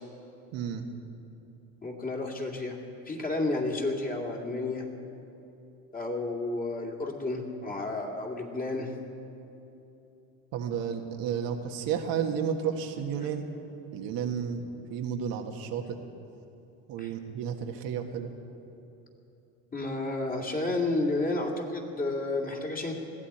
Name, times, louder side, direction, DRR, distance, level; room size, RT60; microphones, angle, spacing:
voice 1, 0.5-0.9 10.5-13.4 13.9-16.0 16.9-18.3, right 7 dB, 65° right, 3 dB, 1.5 m, -32 dB
voice 2, 1.8-2.8 3.0-4.9 5.9-8.9 17.0-17.1 19.7-22.9, left 2 dB, 25° left, 0 dB, 2.5 m, -31 dB
21.0 x 15.0 x 4.3 m, 2.9 s
supercardioid pair, 100°, 37 cm